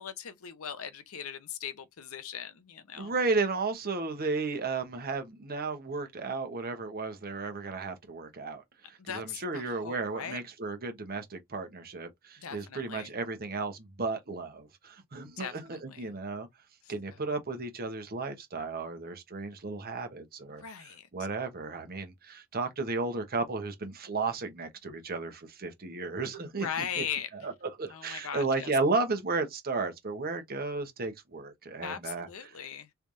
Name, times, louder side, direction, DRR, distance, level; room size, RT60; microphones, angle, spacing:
voice 1, 0.0-3.1 9.0-10.4 12.4-13.1 15.4-16.1 20.6-21.1 26.6-27.3 27.9-28.7 31.8-32.9, left 8 dB, 80° left, 0.7 m, -39 dB
voice 2, 3.0-8.6 8.9-16.5 16.9-27.0 27.4-27.5 27.8-32.6, right 3 dB, 45° right, 1.0 m, -34 dB
3.4 x 3.3 x 2.6 m
head